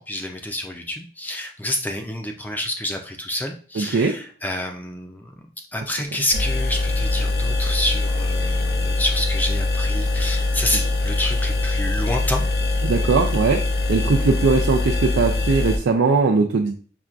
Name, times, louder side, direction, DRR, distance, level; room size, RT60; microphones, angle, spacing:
voice 1, 0.0-5.4 5.7-12.5, left 1 dB, 10° left, 2 dB, 0.4 m, -28 dB
voice 2, 3.8-4.1 12.8-13.6 13.9-16.7, right 4 dB, 80° right, 1 dB, 0.4 m, -20 dB
sound 1, 6.3-15.8, left 2 dB, 55° left, 0.6 m, -22 dB
5.6 x 2.3 x 2.4 m, 0.41 s
head